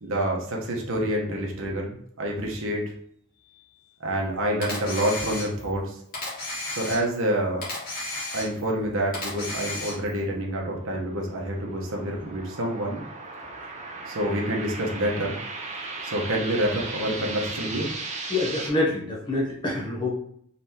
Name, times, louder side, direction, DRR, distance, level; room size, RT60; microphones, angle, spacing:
voice 1, 0.0-2.9 4.0-6.0 6.7-7.7 8.3-13.0 14.1-15.3 16.0-17.9, right 1 dB, 60° right, 0 dB, 1.0 m, -27 dB
Camera, 4.6-5.8 6.1-7.3 7.6-8.8 9.1-10.2, left 2 dB, 40° left, 1.5 m, -33 dB
sound 1, 10.3-18.7, right 3 dB, 30° right, 0.6 m, -37 dB
voice 2, 18.3-20.2, left 2 dB, 20° left, -2 dB, 0.6 m, -26 dB
4.2 x 3.3 x 2.8 m, 0.67 s
head